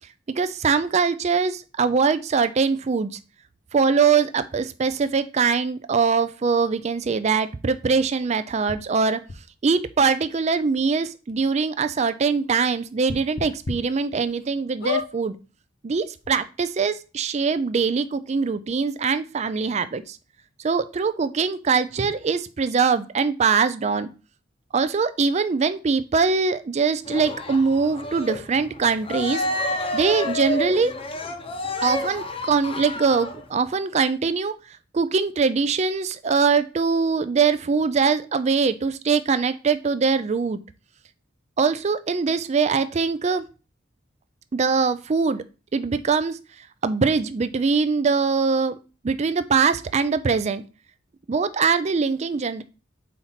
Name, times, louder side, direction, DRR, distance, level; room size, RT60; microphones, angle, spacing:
voice 1, 0.3-3.2 3.7-9.2 9.6-15.4 15.8-20.2 20.6-24.1 24.7-29.4 29.9-30.9 31.8-34.5 34.9-40.6 41.6-43.4 44.5-45.4 45.7-46.4 46.8-48.8 49.0-50.6 51.3-52.6, right 5 dB, 35° right, 12 dB, 0.4 m, -22 dB
sound 1, 8.7-8.8 9.3-9.4 10.3-10.4 10.8-10.9 11.3-11.4 13.0-13.7 14.2-14.3 14.8-15.1 15.9-16.0 16.2-16.3, left 4 dB, 60° left, 1.0 m, -29 dB
Cheering, 27.1-33.5, left 1 dB, 30° left, 0.8 m, -29 dB
4.4 x 4.1 x 5.7 m, 0.32 s
head